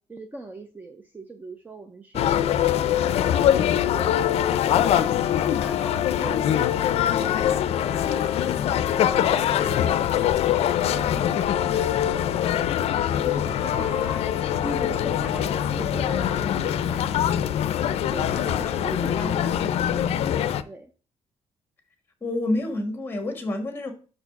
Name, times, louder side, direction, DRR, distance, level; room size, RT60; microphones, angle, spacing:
voice 1, 0.0-2.7 3.1-6.8 7.2-10.2 10.8-12.7 13.2-17.2 18.0-19.6 20.7-20.9, right 2 dB, 15° right, 0.5 m, -40 dB
sound 1, 2.1-20.6, left 10 dB, 60° left, 0.5 m, -23 dB
sound 2, 14.5-19.2, equal, 55° right, 2.4 m, -49 dB
voice 2, 18.8-19.3 19.6-19.7 22.2-23.9, left 1 dB, 20° left, 1.4 m, -30 dB
6.4 x 4.7 x 5.8 m
cardioid pair, 170°, 12 cm